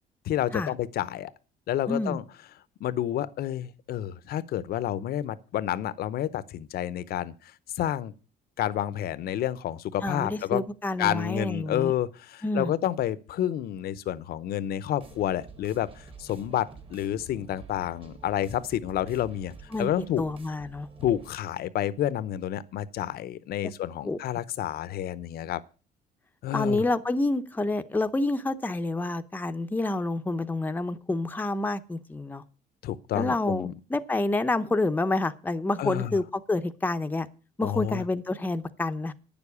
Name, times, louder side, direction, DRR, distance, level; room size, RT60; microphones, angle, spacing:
voice 1, 0.2-1.3 1.7-2.2 2.8-8.1 8.6-10.6 11.0-19.5 19.8-20.2 21.0-25.6 26.4-26.8 32.8-33.7 35.8-36.2 37.6-38.0, left 11 dB, 65° left, 0.8 m, -29 dB
voice 2, 1.9-2.2 10.0-11.9 12.4-12.7 19.7-20.9 24.0-24.2 26.5-32.4 33.1-37.3 37.6-39.1, left 2 dB, 10° left, 0.7 m, -28 dB
sound 1, 15.0-21.3, right 4 dB, 35° right, 1.7 m, -49 dB
9.5 x 7.1 x 8.3 m
cardioid pair, 110°, 17 cm